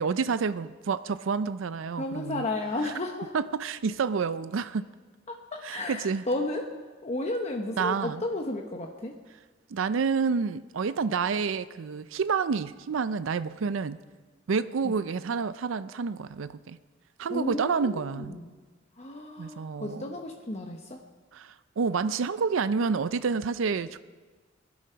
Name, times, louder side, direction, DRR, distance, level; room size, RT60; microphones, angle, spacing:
voice 1, 0.0-2.5 2.8-2.9 3.3-4.9 5.6-6.2 7.8-8.2 9.7-14.0 14.5-16.8 17.2-18.4 19.4-20.1 21.3-24.0, right 5 dB, 90° right, 14 dB, 0.5 m, -29 dB
voice 2, 2.0-3.3 5.3-6.7 7.0-9.2 14.8-15.0 17.3-18.5 19.0-21.0, left 2 dB, 35° left, 2 dB, 1.0 m, -33 dB
19.5 x 12.0 x 5.7 m, 1.4 s
head